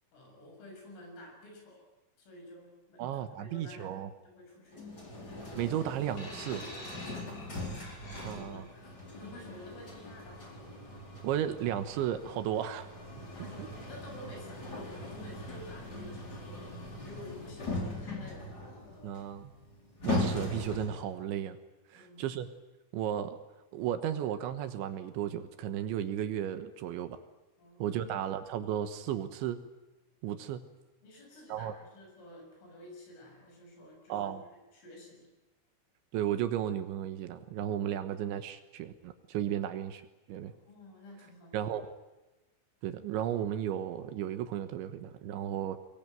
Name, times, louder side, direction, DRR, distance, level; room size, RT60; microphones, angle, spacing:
voice 1, 0.1-1.8 2.2-4.0 4.2-5.0 7.0-7.3 8.3-10.5 13.4-18.6 21.9-22.3 27.6-28.2 31.0-35.3 40.5-41.7, left 1 dB, 80° left, 2 dB, 9.3 m, -51 dB
voice 2, 3.0-4.1 5.6-6.7 8.2-8.6 11.2-12.9 13.6-13.7 19.0-19.5 20.0-21.6 21.9-22.5 22.9-23.4 23.7-27.2 27.8-29.6 30.2-30.6 31.5-31.7 34.1-34.4 36.1-40.0 40.3-40.5 41.5-41.9 42.8-45.8, right 10 dB, 75° right, 9 dB, 3.3 m, -34 dB
sound 1, 4.7-21.1, left 2 dB, 20° left, 4.3 m, -40 dB
sound 2, 6.2-8.7 9.6-9.8, left 1 dB, 40° left, 7.7 m, -47 dB
23.5 x 21.5 x 9.1 m, 1.0 s
omnidirectional pair, 5.7 m